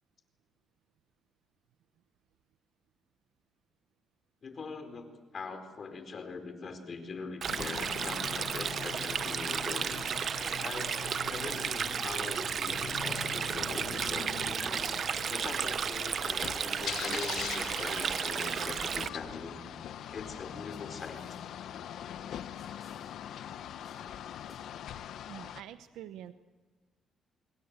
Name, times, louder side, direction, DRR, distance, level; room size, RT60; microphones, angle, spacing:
voice 1, 4.4-9.9 10.6-11.0 11.3-19.6 20.1-21.2, left 4 dB, 45° left, 7 dB, 4.3 m, -42 dB
Stream, 7.4-19.1, right 7 dB, 55° right, 0.9 m, -33 dB
sound 1, 7.5-25.6, left 10 dB, 75° left, 1.1 m, -42 dB
sound 2, 19.1-24.8 25.1-25.2, left 2 dB, 25° left, 7.9 m, -63 dB
voice 2, 25.3-26.3, right 11 dB, 90° right, 10 dB, 0.9 m, -46 dB
26.5 x 22.5 x 8.2 m, 1.3 s
cardioid pair, 90°, 0 cm